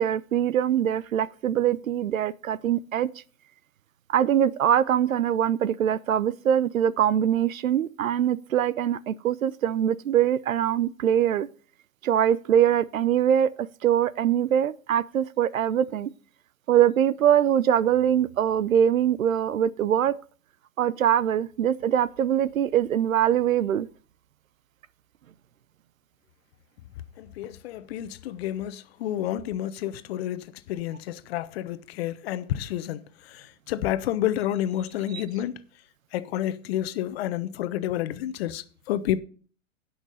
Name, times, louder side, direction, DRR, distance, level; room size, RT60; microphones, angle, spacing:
voice 1, 0.0-3.1 4.1-11.5 12.0-16.1 16.7-20.2 20.8-23.9 35.1-35.2, right 10 dB, 70° right, 0.8 m, -23 dB
voice 2, 27.2-30.4 30.7-33.0 33.7-35.5 36.1-39.2, left 12 dB, 45° left, 1.1 m, -29 dB
17.0 x 6.0 x 4.1 m
hypercardioid pair, 120°, 41 cm